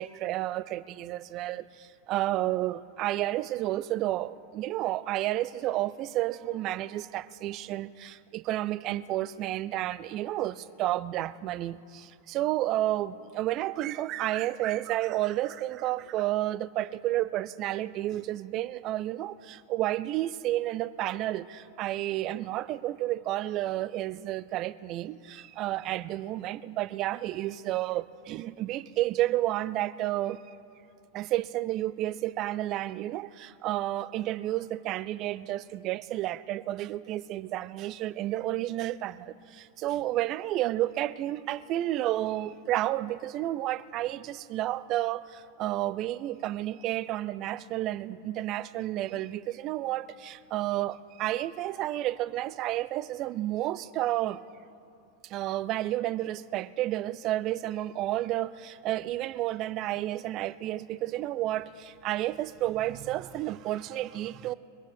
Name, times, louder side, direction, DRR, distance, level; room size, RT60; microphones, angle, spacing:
voice 1, 0.0-30.6 31.1-54.4 55.2-64.5, right 14 dB, 35° right, 17 dB, 0.4 m, -31 dB
21.5 x 8.1 x 7.8 m, 2.6 s
figure-of-eight pair, 90°, 0 cm